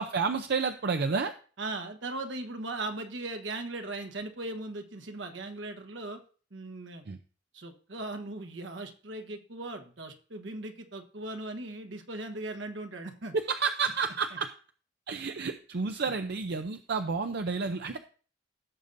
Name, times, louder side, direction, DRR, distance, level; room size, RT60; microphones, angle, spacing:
voice 1, 0.0-1.3 7.1-7.2 13.3-14.5 15.1-18.0, right 5 dB, 60° right, 7 dB, 0.6 m, -30 dB
voice 2, 1.6-6.2 6.5-7.0 7.5-13.3, right 2 dB, 80° right, 6 dB, 1.3 m, -38 dB
16.0 x 6.8 x 2.6 m, 0.40 s
head